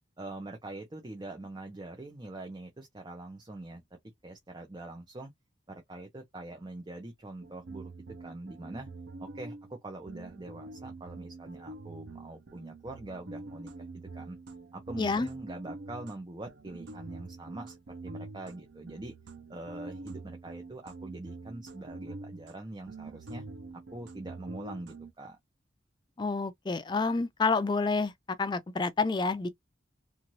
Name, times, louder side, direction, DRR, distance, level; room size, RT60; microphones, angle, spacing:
voice 1, 0.2-3.8 4.2-5.3 5.7-7.9 8.2-8.9 9.2-14.4 14.7-17.8 18.0-19.1 19.5-23.4 23.9-25.4, right 2 dB, 20° right, 0.6 m, -43 dB
sound 1, 7.4-9.8 10.1-16.2 16.5-22.6 22.9-25.1, right 3 dB, 60° right, 0.5 m, -45 dB
voice 2, 15.0-15.3 26.2-28.1 28.4-29.5, left 4 dB, 25° left, 0.3 m, -28 dB
3.0 x 2.4 x 2.6 m
head